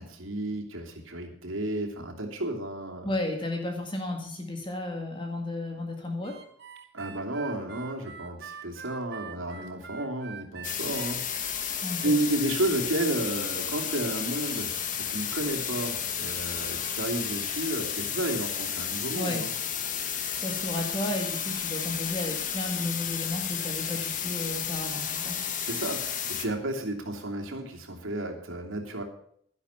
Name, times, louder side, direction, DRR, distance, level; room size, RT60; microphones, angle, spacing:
voice 1, 0.0-3.1 6.9-11.6 12.0-19.5 25.6-29.0, right 1 dB, 85° right, 2 dB, 2.8 m, -32 dB
voice 2, 3.0-6.4 11.8-12.1 19.2-19.5 20.4-25.4, left 1 dB, 25° left, 3 dB, 1.9 m, -33 dB
Harmonica, 6.2-11.8, right 7 dB, 55° right, 1.7 m, -45 dB
sound 1, 10.6-26.4, left 8 dB, 40° left, 1.3 m, -32 dB
11.5 x 11.0 x 5.7 m, 0.64 s
head